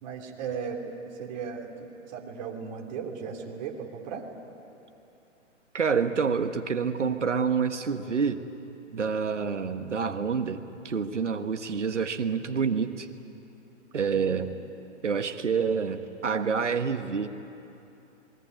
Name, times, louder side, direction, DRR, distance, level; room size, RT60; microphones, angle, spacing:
voice 1, 0.0-4.3 14.1-14.5, right 6 dB, 35° right, 1 dB, 3.1 m, -37 dB
voice 2, 5.7-8.4 8.9-13.1 13.9-14.5 15.0-17.3, right 6 dB, 70° right, 8 dB, 1.5 m, -27 dB
27.0 x 21.0 x 9.6 m, 2.8 s
figure-of-eight pair, 125°, 37 cm